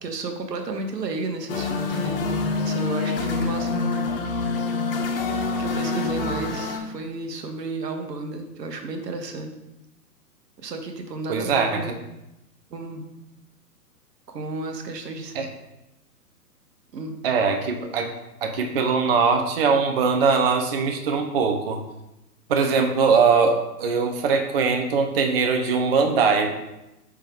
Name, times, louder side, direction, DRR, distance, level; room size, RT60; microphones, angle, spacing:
voice 1, 0.0-2.2 2.6-4.1 5.6-9.5 10.6-11.9 12.7-13.0 14.3-15.3 16.9-17.2, right 3 dB, 80° right, 5 dB, 0.9 m, -32 dB
sound 1, 1.5-6.8, left 4 dB, 40° left, 0.5 m, -26 dB
voice 2, 11.3-11.9 15.3-15.5 17.2-18.1 18.4-21.8 22.5-26.5, right 5 dB, 40° right, 3 dB, 0.4 m, -21 dB
4.6 x 3.4 x 3.4 m, 0.93 s
hypercardioid pair, 125°, 49 cm